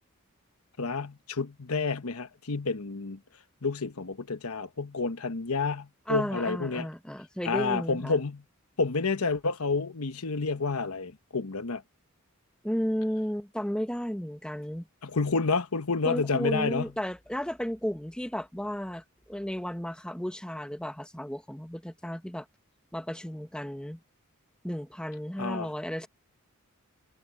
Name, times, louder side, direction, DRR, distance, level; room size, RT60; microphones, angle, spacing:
voice 1, 0.8-3.2 3.6-6.9 7.4-8.4 8.8-11.8 15.0-16.8 25.4-25.7, left 4 dB, 80° left, 1.1 m, -29 dB
voice 2, 6.1-8.2 12.6-14.9 16.0-22.5 22.9-24.0 24.6-26.1, equal, 5° left, 1.0 m, -33 dB
head